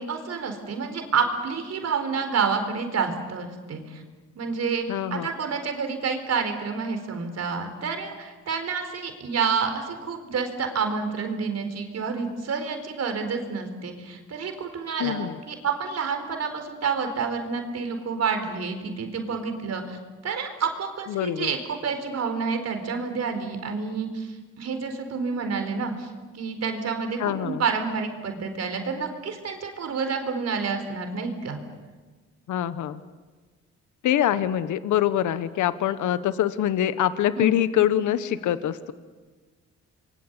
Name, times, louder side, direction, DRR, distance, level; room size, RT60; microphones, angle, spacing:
voice 1, 0.0-4.0 4.3-4.8 5.1-31.6 37.3-37.5, right 5 dB, 55° right, 6 dB, 4.4 m, -29 dB
voice 2, 4.9-5.3 15.0-15.4 21.1-21.5 27.2-27.6 32.5-33.0 34.0-38.9, left 11 dB, 75° left, 13 dB, 1.2 m, -24 dB
27.5 x 23.0 x 8.3 m, 1.3 s
cardioid pair, 90°, 30 cm